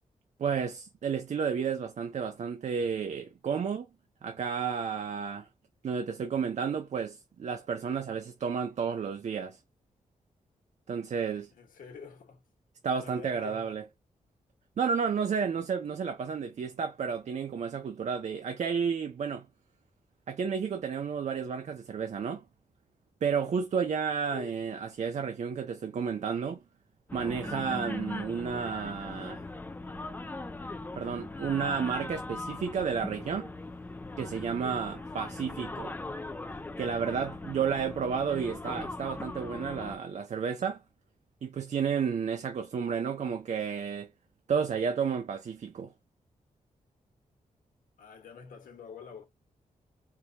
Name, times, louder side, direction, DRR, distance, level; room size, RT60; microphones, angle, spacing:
voice 1, 0.4-3.9 4.2-5.5 5.8-9.6 10.9-11.5 12.8-13.8 14.8-19.5 20.3-22.4 23.2-26.6 27.1-29.5 31.0-33.5 34.2-35.9 36.8-40.8 41.4-44.1 44.5-45.9, right 6 dB, 55° right, 0.6 m, -31 dB
voice 2, 11.5-12.4 12.9-13.8 24.3-24.6 48.0-49.3, left 6 dB, 85° left, 1.2 m, -47 dB
sound 1, 27.1-40.0, left 2 dB, 15° left, 0.5 m, -40 dB
4.6 x 2.6 x 2.2 m
wide cardioid pair, 110°, 14 cm